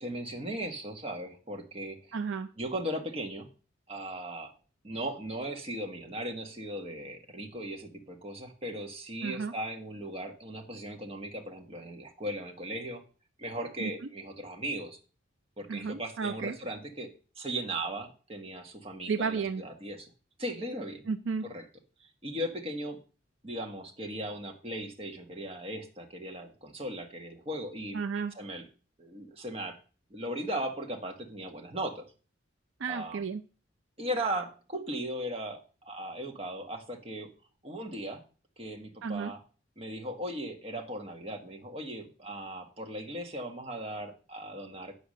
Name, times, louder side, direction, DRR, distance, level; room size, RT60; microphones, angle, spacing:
voice 1, 0.0-2.2 2.6-3.5 3.9-4.5 4.8-13.0 13.4-15.0 15.6-20.1 20.4-21.1 21.4-21.6 22.0-23.0 23.4-28.0 28.3-28.6 29.0-29.8 30.1-32.1 32.9-33.2 34.0-37.3 37.6-38.2 38.6-39.4 39.8-45.0, right 1 dB, 30° right, 2 dB, 1.6 m, -37 dB
voice 2, 2.1-2.5 9.2-9.5 13.8-13.9 15.7-16.6 19.1-19.6 21.1-21.4 27.9-28.3 32.8-33.4 39.0-39.3, right 5 dB, 70° right, 10 dB, 0.5 m, -32 dB
9.9 x 5.0 x 6.5 m, 0.37 s
head